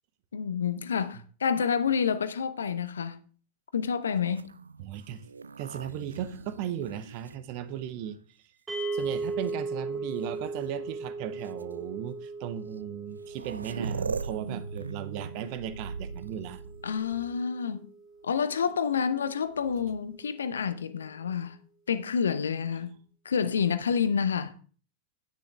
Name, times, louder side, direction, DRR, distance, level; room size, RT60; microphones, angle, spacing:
voice 1, 0.3-3.2 3.7-4.5 16.8-17.8 18.2-21.6 21.9-23.0 23.2-24.5, left 6 dB, 70° left, 0.7 m, -28 dB
sound 1, 4.3-8.1 8.8-9.5 10.6-10.7 11.4-11.6 12.8-12.9 13.0-17.5 19.4-20.1, right 5 dB, 75° right, 0.3 m, -40 dB
voice 2, 4.8-5.2 5.6-8.2 8.9-16.6, right 10 dB, 45° right, 0.9 m, -36 dB
sound 2, 8.7-19.0, right 3 dB, 15° right, 2.1 m, -38 dB
9.8 x 9.1 x 3.5 m
figure-of-eight pair, 90°, 0 cm